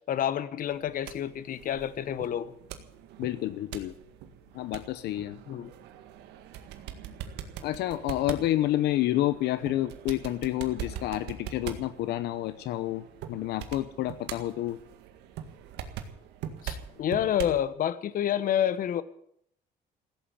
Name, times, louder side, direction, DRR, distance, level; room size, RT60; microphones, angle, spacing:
voice 1, 0.1-2.5 5.5-5.7 16.6-19.0, left 10 dB, 55° left, 1.1 m, -28 dB
sound 1, 0.7-17.6, right 9 dB, 85° right, 1.9 m, -43 dB
voice 2, 3.2-3.9 4.5-5.4 7.6-14.8, left 14 dB, 80° left, 0.9 m, -29 dB
16.0 x 8.7 x 9.8 m
cardioid pair, 110°, 17 cm